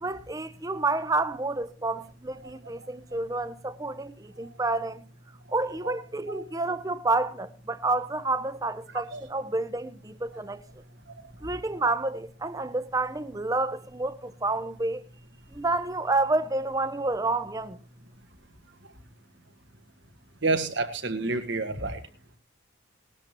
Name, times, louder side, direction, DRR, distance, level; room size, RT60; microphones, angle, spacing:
voice 1, 0.0-5.0 5.5-10.6 11.4-15.0 15.5-17.8, right 2 dB, 15° right, 0.6 m, -29 dB
voice 2, 20.4-22.0, right 3 dB, 60° right, 1.6 m, -28 dB
18.5 x 13.0 x 3.0 m
head